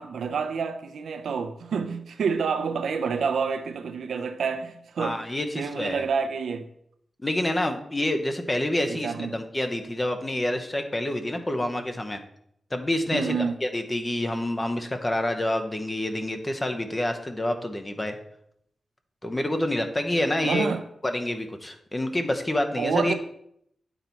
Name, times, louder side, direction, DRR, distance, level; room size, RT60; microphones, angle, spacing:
voice 1, 0.0-5.2 5.5-6.7 8.9-9.4 13.1-13.5 20.4-20.8 22.8-23.1, right 5 dB, 85° right, 0.6 m, -28 dB
voice 2, 5.0-6.0 7.2-12.2 12.7-13.3 13.6-18.1 19.2-20.7 21.0-23.1, left 1 dB, 20° left, 0.9 m, -27 dB
8.8 x 4.1 x 4.4 m
wide cardioid pair, 90°, 0 cm